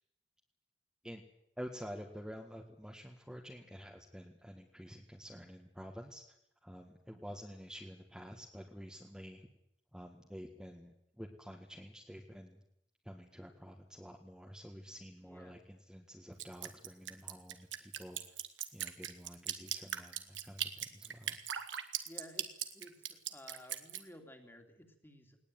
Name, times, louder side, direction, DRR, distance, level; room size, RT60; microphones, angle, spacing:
voice 1, 1.6-6.2 6.6-9.4 9.9-12.6 13.0-18.2 18.7-21.4, equal, 5° right, 0 dB, 1.8 m, -49 dB
voice 2, 14.9-15.6 22.1-25.4, left 1 dB, 10° left, 5 dB, 2.9 m, -55 dB
Drip, 16.4-24.0, right 10 dB, 85° right, 1.9 m, -39 dB
19.5 x 19.0 x 9.3 m, 0.77 s
head